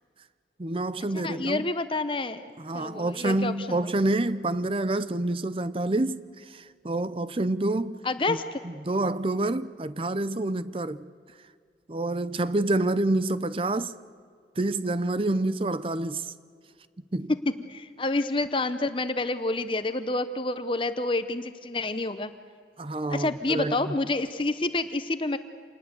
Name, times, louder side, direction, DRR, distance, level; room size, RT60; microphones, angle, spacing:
voice 1, 0.6-1.7 2.6-8.0 8.3-8.4 8.6-11.1 11.9-13.9 14.6-16.3 17.1-17.3 22.8-24.0, right 2 dB, 30° right, 0.6 m, -28 dB
voice 2, 1.1-3.8 8.0-8.6 17.3-17.4 17.7-22.3 23.1-25.4, left 2 dB, 30° left, 0.7 m, -28 dB
27.5 x 20.0 x 8.0 m
head